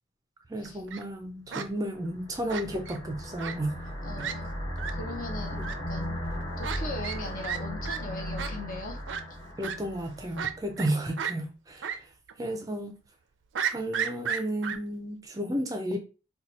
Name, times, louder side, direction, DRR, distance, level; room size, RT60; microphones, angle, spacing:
voice 1, 0.5-3.8 4.2-4.3 9.6-12.1 12.4-12.9 13.6-16.0, right 1 dB, 20° right, 0.4 m, -33 dB
Fowl, 0.6-1.0 1.5-1.7 2.5-3.0 3.4-3.5 3.9-4.0 4.2-4.3 4.8-4.9 5.6-5.7 6.6-6.8 7.0-7.2 7.4-7.6 7.8-8.0 8.4-8.5 9.1-9.2 9.6-9.8 10.4-10.9 11.2-11.3 11.8-12.0 12.3-12.4 13.5-14.8, right 8 dB, 90° right, 0.4 m, -32 dB
sound 1, 2.0-10.6, equal, 25° left, 1.2 m, -36 dB
voice 2, 4.0-4.5 4.9-6.2 6.6-9.0 12.4-12.6, left 1 dB, 45° left, 0.7 m, -40 dB
2.8 x 2.2 x 4.1 m
head